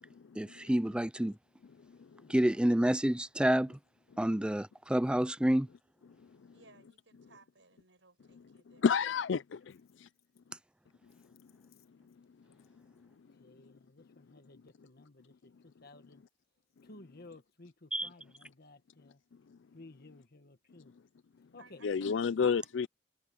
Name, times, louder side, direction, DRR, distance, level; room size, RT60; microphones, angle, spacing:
voice 1, 0.4-1.4 2.3-3.8 4.2-5.7 17.9-18.1, right 1 dB, 5° right, 0.4 m, -28 dB
voice 2, 6.5-8.9 9.6-9.7 21.6-22.7, right 4 dB, 80° right, 6.2 m, -61 dB
voice 3, 8.8-10.1 21.8-22.9, left 6 dB, 70° left, 0.4 m, -30 dB
voice 4, 12.9-16.2 16.8-19.2 19.7-20.9 21.5-21.8 22.4-22.5, left 2 dB, 55° left, 1.5 m, -55 dB
head